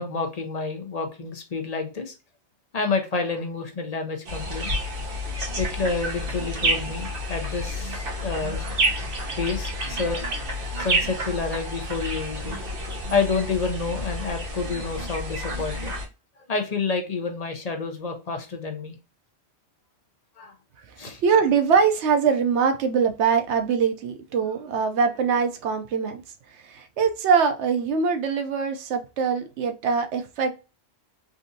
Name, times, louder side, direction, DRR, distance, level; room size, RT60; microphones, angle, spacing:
voice 1, 0.0-2.1 2.7-4.7 5.6-8.6 9.4-10.3 10.8-15.9 16.5-19.0 20.4-20.5 21.0-21.2, left 4 dB, 40° left, 0.7 m, -29 dB
sound 1, 4.3-16.1, equal, 55° right, 1.1 m, -29 dB
voice 2, 21.2-26.2 26.6-30.6, right 6 dB, 85° right, 0.9 m, -23 dB
3.7 x 2.5 x 2.6 m
omnidirectional pair, 1.1 m